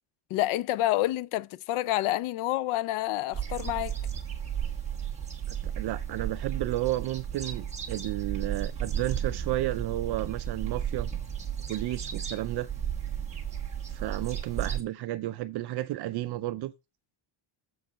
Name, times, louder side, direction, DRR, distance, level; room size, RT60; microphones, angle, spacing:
voice 1, 0.3-4.0, left 15 dB, 75° left, 0.6 m, -28 dB
sound 1, 3.3-14.8, right 9 dB, 15° right, 1.2 m, -34 dB
voice 2, 5.5-11.1 11.7-12.7 13.9-16.7, right 15 dB, 55° right, 0.5 m, -32 dB
7.4 x 4.8 x 5.1 m
cardioid pair, 175°, 49 cm